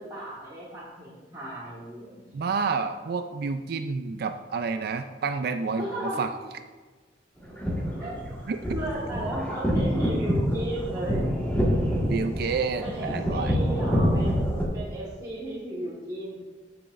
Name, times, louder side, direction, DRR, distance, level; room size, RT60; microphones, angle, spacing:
voice 1, 0.0-2.2 5.8-6.3 8.0-8.2 8.7-11.3 12.8-16.4, right 1 dB, 20° right, -9 dB, 1.7 m, -35 dB
voice 2, 2.3-6.3 8.5-8.6 12.1-13.6, right 5 dB, 60° right, 8 dB, 0.4 m, -29 dB
sound 1, 7.4-14.6, equal, 10° left, 1.7 m, -26 dB
14.5 x 6.0 x 2.5 m, 1.3 s
head